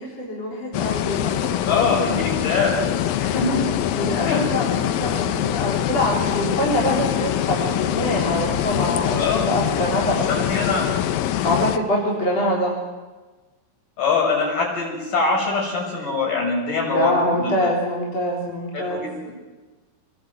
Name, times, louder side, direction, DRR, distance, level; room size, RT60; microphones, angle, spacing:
voice 1, 0.0-2.0 3.9-9.2 9.5-10.3 11.4-12.8 16.9-19.1, equal, 45° left, -3 dB, 4.7 m, -24 dB
sound 1, 0.7-11.8, left 11 dB, 80° left, 2.7 m, -24 dB
voice 2, 1.6-2.7 3.2-3.6 4.2-4.4 9.1-9.5 10.3-10.9 14.0-17.7 18.7-19.3, left 4 dB, 65° left, -1 dB, 8.3 m, -23 dB
25.5 x 21.0 x 8.4 m, 1.3 s
omnidirectional pair, 4.1 m